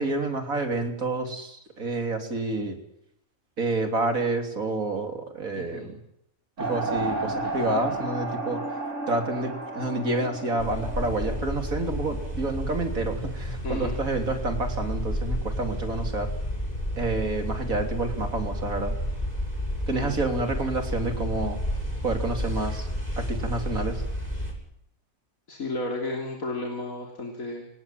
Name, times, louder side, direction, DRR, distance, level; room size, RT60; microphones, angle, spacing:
voice 1, 0.0-2.8 3.6-6.0 6.6-8.6 9.1-16.3 17.0-18.9 19.9-21.6 22.0-22.9 23.2-24.0, right 2 dB, 90° right, 5 dB, 3.9 m, -29 dB
voice 2, 5.5-5.9 13.6-14.0 19.9-20.2 25.5-27.7, left 2 dB, 85° left, 1 dB, 3.7 m, -33 dB
sound 1, 6.6-12.6, right 2 dB, 60° right, 3.9 m, -33 dB
sound 2, 10.6-24.5, equal, 30° left, 7.9 m, -31 dB
27.5 x 19.0 x 7.6 m, 0.77 s
omnidirectional pair, 1.4 m